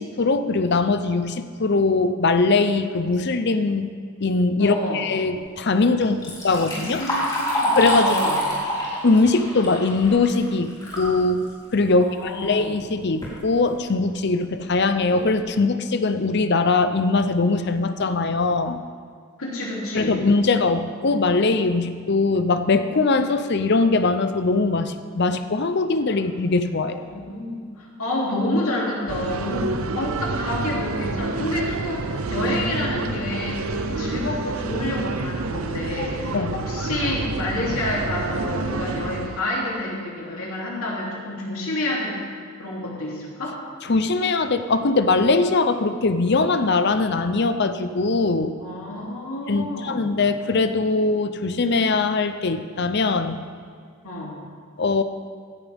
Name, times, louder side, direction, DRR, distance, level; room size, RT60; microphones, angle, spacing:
voice 1, 0.0-3.9 4.2-7.1 7.7-8.2 9.0-18.8 19.9-27.0 33.9-34.0 36.3-36.6 43.9-48.6 49.5-53.4 54.8-55.0, left 3 dB, 50° left, 10 dB, 0.6 m, -21 dB
voice 2, 4.6-5.0 6.6-8.4 11.9-12.6 19.4-20.2 27.1-42.2 42.6-43.6 48.6-50.1 54.0-54.4, left 1 dB, 80° left, -4 dB, 3.0 m, -29 dB
Liquid, 6.0-11.1 11.5-11.6 12.5-12.6 13.0-13.4 14.0-14.1 14.6-14.7 15.1-15.4, equal, 20° left, 3.4 m, -26 dB
sound 1, 29.1-39.4, right 3 dB, 70° right, 0.6 m, -28 dB
16.5 x 11.0 x 3.6 m, 2.1 s
head